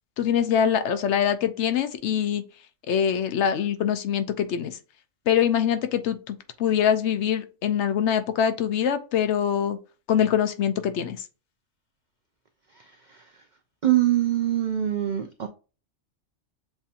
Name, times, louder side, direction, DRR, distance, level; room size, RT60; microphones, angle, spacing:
voice 1, 0.2-2.4 2.9-4.8 5.3-9.8 10.1-11.2, left 8 dB, 65° left, 0.8 m, -24 dB
voice 2, 12.8-13.2 13.8-15.5, right 13 dB, 80° right, 0.4 m, -24 dB
7.1 x 2.7 x 2.5 m
omnidirectional pair, 1.4 m